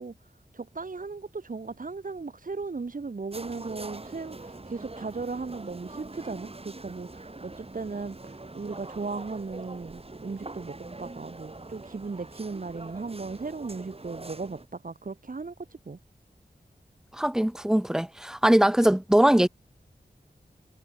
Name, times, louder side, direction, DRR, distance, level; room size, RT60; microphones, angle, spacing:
voice 1, 0.0-16.0, right 4 dB, 55° right, 1.5 m, -37 dB
sound 1, 3.3-14.7, right 2 dB, 35° right, 3.4 m, -43 dB
voice 2, 17.2-19.5, right 1 dB, 5° right, 0.3 m, -21 dB
wide cardioid pair, 90°, 17 cm